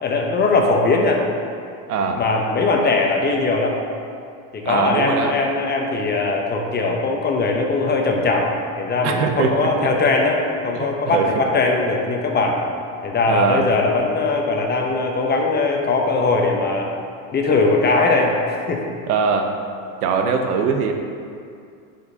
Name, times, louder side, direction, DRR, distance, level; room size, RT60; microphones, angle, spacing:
voice 1, 0.0-1.2 2.1-3.8 4.5-8.5 8.8-12.6 13.0-16.9 17.3-18.8, left 3 dB, 25° left, 1 dB, 0.8 m, -20 dB
voice 2, 1.9-2.2 4.6-5.3 9.0-9.7 10.7-11.3 13.3-13.6 19.1-19.5 20.0-20.9, right 6 dB, 80° right, 4 dB, 0.9 m, -21 dB
9.3 x 5.2 x 2.8 m, 2.4 s
supercardioid pair, 110°, 45 cm